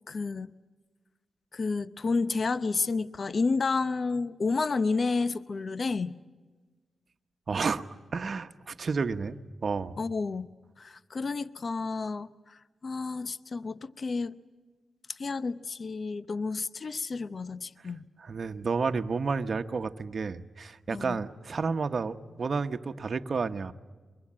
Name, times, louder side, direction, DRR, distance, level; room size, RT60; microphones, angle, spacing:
voice 1, 0.1-0.5 1.5-6.1 10.0-10.5 10.8-14.4 15.1-18.0 20.9-21.2, left 4 dB, 45° left, 0.7 m, -31 dB
voice 2, 7.5-7.8 8.1-10.0 18.2-23.7, right 4 dB, 50° right, 1.1 m, -31 dB
24.0 x 23.0 x 8.8 m
cardioid pair, 75°, 0 cm